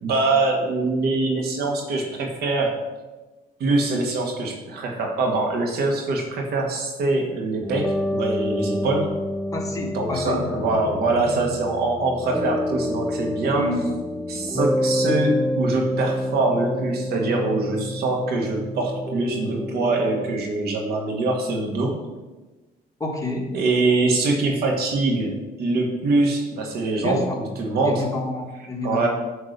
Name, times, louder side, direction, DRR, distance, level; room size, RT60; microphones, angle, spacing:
voice 1, 0.0-2.7 3.6-9.1 9.9-13.7 14.3-22.0 23.5-27.2 27.6-28.0 28.8-29.1, right 2 dB, 70° right, 1 dB, 1.9 m, -23 dB
sound 1, 7.6-20.4, left 1 dB, 5° left, 0.5 m, -28 dB
voice 2, 9.5-10.5 13.5-13.8 23.0-23.5 27.0-27.4 27.8-29.1, left 2 dB, 20° left, 0 dB, 1.6 m, -29 dB
9.6 x 3.6 x 6.7 m, 1.2 s
cardioid pair, 110°, 17 cm